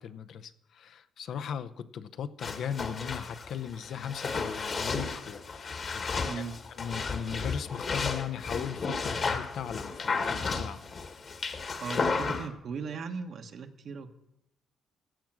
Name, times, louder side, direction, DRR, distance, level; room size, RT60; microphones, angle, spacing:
voice 1, 0.0-6.4 6.8-10.8, left 8 dB, 70° left, 12 dB, 0.6 m, -38 dB
sound 1, 2.4-12.5, left 4 dB, 45° left, 1.4 m, -33 dB
voice 2, 6.3-6.6 11.8-14.1, right 5 dB, 60° right, 6 dB, 1.2 m, -38 dB
15.5 x 7.5 x 6.1 m, 0.83 s
cardioid pair, 90°, 0 cm